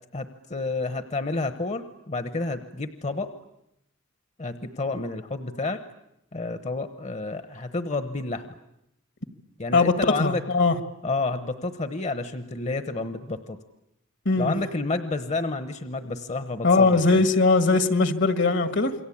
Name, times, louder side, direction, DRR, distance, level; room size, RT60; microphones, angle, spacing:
voice 1, 0.1-3.3 4.4-5.8 6.3-8.5 9.6-10.4 11.0-13.6 14.4-17.2, left 3 dB, 35° left, 11 dB, 1.1 m, -30 dB
voice 2, 9.7-10.8 14.3-14.5 16.6-18.9, left 3 dB, 65° left, 11 dB, 1.7 m, -20 dB
28.0 x 23.0 x 8.7 m, 0.81 s
head